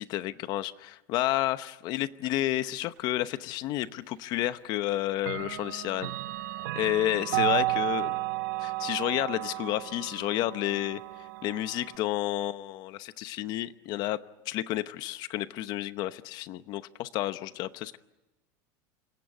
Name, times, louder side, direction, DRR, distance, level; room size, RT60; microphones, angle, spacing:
voice 1, 0.0-6.1 6.7-8.2 8.6-11.0 11.4-14.2 14.5-18.0, left 15 dB, 40° left, 13 dB, 0.9 m, -31 dB
Clock, 3.8-3.9 5.2-12.0, right 18 dB, 85° right, 1.4 m, -33 dB
28.0 x 17.0 x 9.8 m, 1.1 s
cardioid pair, 170°, 10 cm